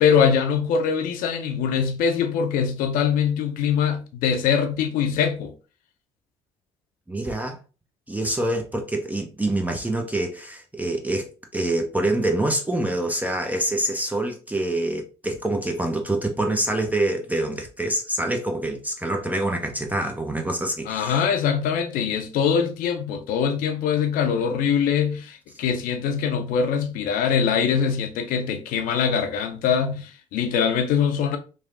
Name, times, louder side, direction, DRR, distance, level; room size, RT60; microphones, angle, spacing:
voice 1, 0.0-5.5 20.9-31.4, left 7 dB, 65° left, 0.5 m, -23 dB
voice 2, 7.1-7.6 8.1-21.2, right 1 dB, 10° right, 0.5 m, -26 dB
3.1 x 2.0 x 2.6 m
hypercardioid pair, 55°, 16 cm